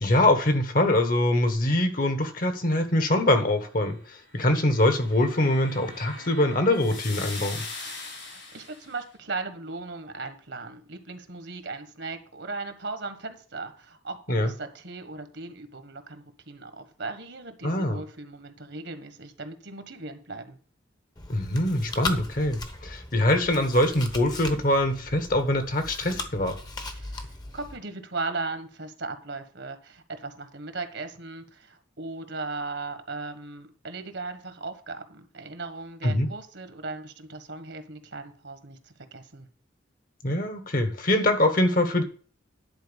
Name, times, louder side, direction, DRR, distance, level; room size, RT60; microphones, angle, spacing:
voice 1, 0.0-7.6 14.3-14.5 17.6-18.0 21.3-26.6 36.0-36.3 40.2-42.0, left 1 dB, 45° left, 8 dB, 1.3 m, -23 dB
sound 1, 4.3-8.9, left 3 dB, 80° left, 5.8 m, -41 dB
voice 2, 8.0-20.6 26.9-39.5, right 3 dB, 65° right, 8 dB, 1.4 m, -37 dB
Chewing mastication, 21.2-27.8, left 3 dB, 20° left, 0.9 m, -38 dB
10.5 x 4.4 x 7.0 m, 0.43 s
head